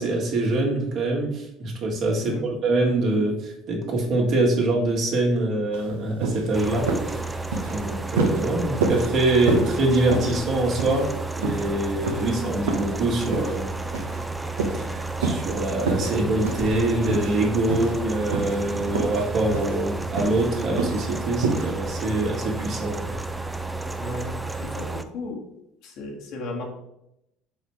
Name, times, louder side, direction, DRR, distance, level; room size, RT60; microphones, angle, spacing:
voice 1, 0.0-7.2 7.7-13.7 14.8-23.1, right 2 dB, 55° right, -1 dB, 2.0 m, -24 dB
voice 2, 2.2-2.5 24.0-25.4 25.8-26.6, left 2 dB, 60° left, 1 dB, 1.7 m, -35 dB
sound 1, 5.7-5.9 6.2-6.5 6.9-7.1 7.5-7.8 8.2-8.4 8.8-9.1 9.5-9.7 10.1-10.4 10.8-11.1 11.4-11.7 12.1-12.2 12.7-12.9 13.3-13.6 13.9-14.2 14.6-14.8 15.2-15.5 15.8-16.2 16.4-16.8 17.1-17.4 17.7-18.0 18.3-18.6 18.9-19.3 19.5-19.8 20.2-20.4 20.8-21.0 21.4-21.7, right 4 dB, 80° right, 1.0 m, -26 dB
sound 2, 6.5-25.0, right 3 dB, 10° right, 0.6 m, -32 dB
5.6 x 4.2 x 4.9 m, 0.83 s
hypercardioid pair, 65°, 0 cm